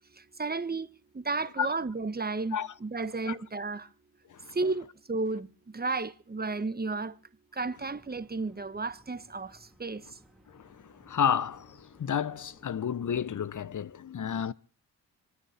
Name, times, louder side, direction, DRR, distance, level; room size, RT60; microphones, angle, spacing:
voice 1, 0.4-0.9 1.1-3.9 4.5-5.5 5.7-7.1 7.5-10.0, right 3 dB, 20° right, 1.2 m, -33 dB
sound 1, 7.8-13.9, equal, ahead, 3.1 m, -62 dB
voice 2, 10.5-14.5, left 8 dB, 40° left, 0.9 m, -31 dB
26.5 x 9.5 x 4.3 m
hypercardioid pair, 45°, 45 cm